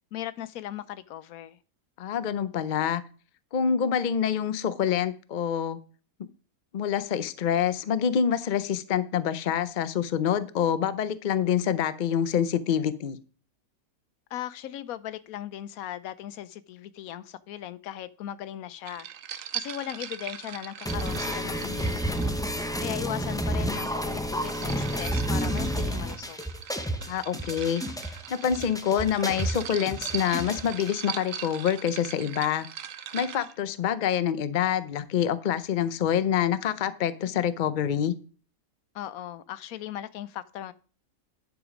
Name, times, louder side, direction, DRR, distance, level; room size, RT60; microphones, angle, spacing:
voice 1, 0.1-1.6 14.3-19.1 19.5-22.4 22.8-26.4 38.9-40.7, left 12 dB, 90° left, 1.1 m, -38 dB
voice 2, 2.0-3.0 3.5-5.8 6.7-13.2 27.1-32.7 33.1-38.1, left 8 dB, 50° left, 0.6 m, -26 dB
sound 1, 18.9-22.8 24.0-33.5, right 10 dB, 75° right, 1.1 m, -40 dB
sound 2, 20.9-30.9, equal, 5° left, 0.5 m, -30 dB
10.0 x 5.2 x 5.0 m
omnidirectional pair, 1.5 m